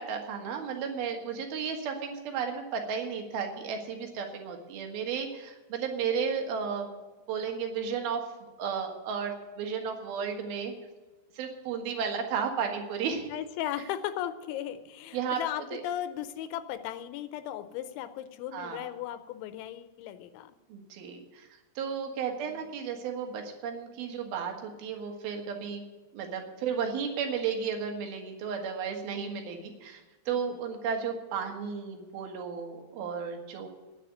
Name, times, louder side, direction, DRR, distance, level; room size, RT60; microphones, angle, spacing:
voice 1, 0.0-6.9 7.3-10.7 11.3-13.3 15.1-15.4 15.7-15.8 18.5-18.9 20.7-21.5 21.8-25.8 26.1-30.0 30.3-33.7, right 6 dB, 65° right, 3 dB, 3.0 m, -33 dB
voice 2, 13.3-20.6 22.5-22.6 29.1-29.6 30.3-30.4, left 11 dB, 85° left, 11 dB, 3.0 m, -37 dB
10.0 x 8.5 x 9.5 m, 1.2 s
omnidirectional pair, 5.4 m